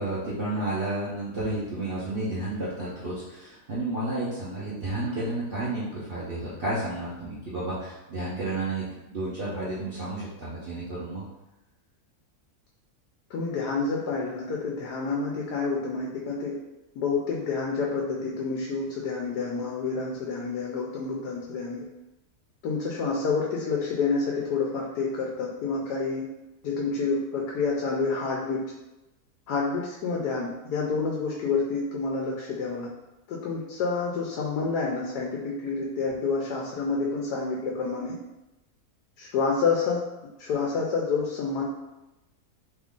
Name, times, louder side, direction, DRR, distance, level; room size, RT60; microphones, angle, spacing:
voice 1, 0.0-11.2, right 2 dB, 50° right, -9 dB, 0.7 m, -31 dB
voice 2, 13.3-16.5 17.0-21.8 22.6-26.2 26.6-28.6 29.5-32.9 33.3-38.1 39.2-40.0 40.4-41.6, left 4 dB, 85° left, -2 dB, 1.1 m, -28 dB
3.1 x 2.4 x 3.6 m, 0.97 s
omnidirectional pair, 1.7 m